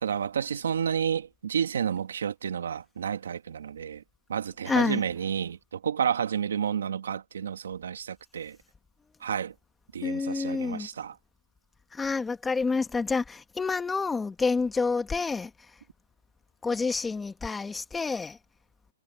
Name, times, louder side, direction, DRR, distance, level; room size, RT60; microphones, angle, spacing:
voice 1, 0.0-4.0 4.3-8.6 9.2-9.5 9.9-11.1, right 8 dB, 75° right, 1.9 m, -30 dB
voice 2, 4.6-5.1 10.0-10.9 11.9-15.8 16.6-18.4, left 4 dB, 5° left, 1.7 m, -28 dB
hypercardioid pair, 160°, 0 cm